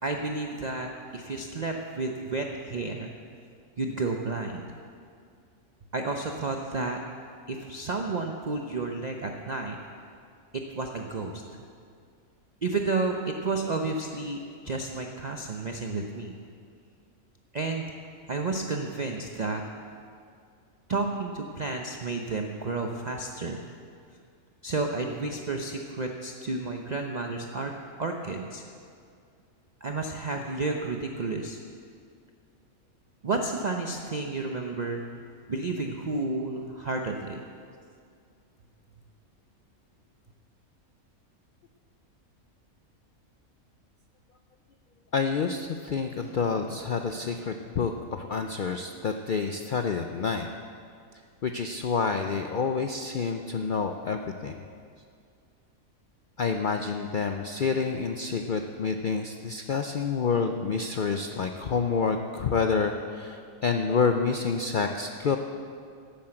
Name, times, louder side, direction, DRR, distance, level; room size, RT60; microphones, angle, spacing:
voice 1, 0.0-3.1 3.8-4.6 5.9-7.0 7.5-9.8 10.7-11.6 12.6-16.3 17.5-17.9 18.3-19.6 20.9-23.6 24.6-27.7 28.0-28.6 29.8-31.6 33.2-35.0 35.5-37.4, right 3 dB, 40° right, 2 dB, 0.6 m, -31 dB
voice 2, 45.1-50.5 51.4-54.6 56.4-65.4, left 5 dB, 60° left, 5 dB, 0.5 m, -28 dB
Boom, 46.2-49.5, right 1 dB, 75° right, 2.6 m, -52 dB
11.5 x 8.5 x 7.7 m, 2.3 s
omnidirectional pair, 1.5 m